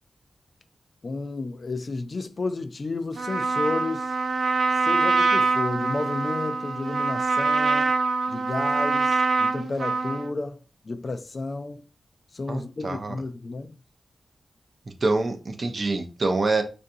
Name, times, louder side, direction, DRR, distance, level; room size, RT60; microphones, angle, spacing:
voice 1, 1.0-4.1 4.8-7.9 8.3-11.8 12.3-13.8, left 3 dB, 45° left, 0.4 m, -32 dB
Trumpet, 3.2-10.3, right 3 dB, 90° right, 0.4 m, -24 dB
voice 2, 12.5-13.2 15.0-16.6, right 3 dB, 45° right, 0.6 m, -25 dB
4.6 x 2.6 x 2.6 m
wide cardioid pair, 115°, 0 cm